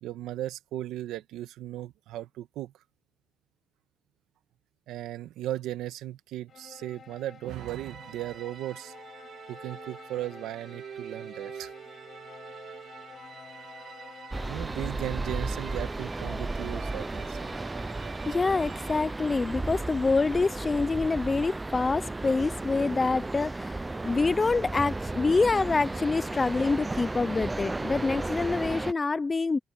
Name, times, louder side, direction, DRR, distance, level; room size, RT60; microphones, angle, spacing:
voice 1, 0.0-2.7 4.9-8.9 9.5-11.7 14.5-17.5, right 13 dB, 85° right, 1.5 m, -36 dB
sound 1, 6.5-15.0, left 7 dB, 60° left, 4.9 m, -50 dB
sound 2, 7.5-19.6, right 8 dB, 65° right, 3.0 m, -46 dB
sound 3, 14.3-28.9, right 2 dB, 20° right, 0.6 m, -34 dB
voice 2, 18.3-29.6, left 3 dB, 35° left, 0.7 m, -26 dB
open air
supercardioid pair, 55°, 0 cm